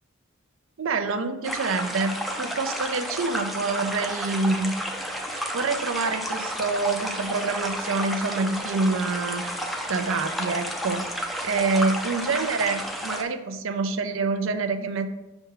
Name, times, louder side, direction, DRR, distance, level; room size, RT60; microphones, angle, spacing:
voice 1, 0.8-4.7 5.3-9.4 9.9-11.1 11.4-15.1, right 3 dB, 65° right, 9 dB, 0.5 m, -26 dB
sound 1, 1.4-13.2, equal, ahead, 0.5 m, -32 dB
5.5 x 3.5 x 5.5 m, 0.98 s
head